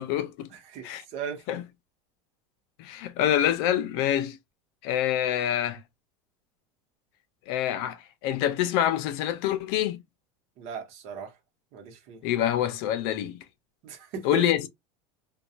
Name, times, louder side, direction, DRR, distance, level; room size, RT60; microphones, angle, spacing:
voice 1, 0.0-0.5 0.8-1.0 1.5-1.6 2.8-4.4 4.8-5.8 7.5-10.0 12.2-13.4 14.2-14.7, left 11 dB, 60° left, 0.6 m, -26 dB
voice 2, 0.5-1.4 10.6-11.3 11.7-12.2 13.8-14.4, right 6 dB, 50° right, 0.9 m, -38 dB
2.8 x 2.3 x 2.3 m
supercardioid pair, 155°, 14 cm